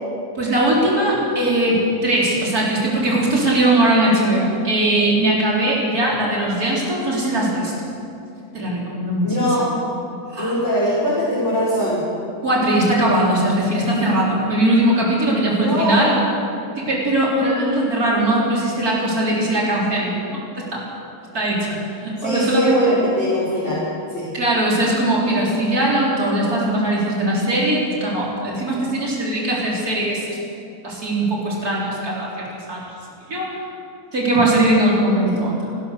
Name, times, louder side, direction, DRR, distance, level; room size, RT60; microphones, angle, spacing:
voice 1, 0.4-7.7 8.5-9.3 10.3-10.5 12.4-16.1 16.8-20.4 20.7-20.8 21.3-21.7 22.0-22.8 24.3-30.4 30.8-32.8 33.3-33.5 34.1-35.5, right 1 dB, 75° right, -5 dB, 4.8 m, -20 dB
voice 2, 9.2-9.7 10.4-12.0 15.6-16.2 22.2-23.8 24.1-24.3 35.3-35.4, equal, 50° left, -10 dB, 5.9 m, -21 dB
29.0 x 13.0 x 6.9 m, 2.6 s
omnidirectional pair, 1.6 m